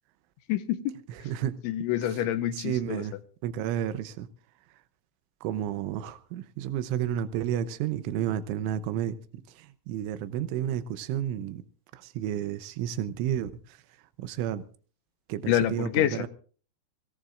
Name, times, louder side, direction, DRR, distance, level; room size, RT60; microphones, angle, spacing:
voice 1, 0.5-1.0 1.6-3.0 15.5-16.3, left 12 dB, 85° left, 3.3 m, -27 dB
voice 2, 2.6-3.1 3.4-4.3 5.4-9.2 9.9-11.6 12.2-13.5 14.2-14.6 15.3-16.3, right 10 dB, 90° right, 3.3 m, -31 dB
26.0 x 17.5 x 2.5 m
omnidirectional pair, 5.4 m